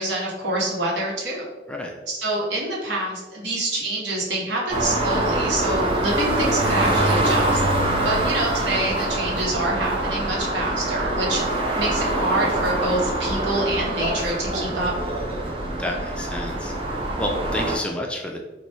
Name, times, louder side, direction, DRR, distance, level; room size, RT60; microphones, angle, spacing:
voice 1, 0.0-1.4 2.1-7.6 8.0-11.4 11.8-14.9, right 1 dB, 75° right, -4 dB, 1.1 m, -26 dB
sound 1, 4.7-17.8, right 1 dB, 30° right, 0.6 m, -24 dB
voice 2, 15.7-16.8 17.2-18.4, left 1 dB, 5° left, 1 dB, 0.3 m, -29 dB
3.0 x 2.3 x 4.1 m, 1.2 s
head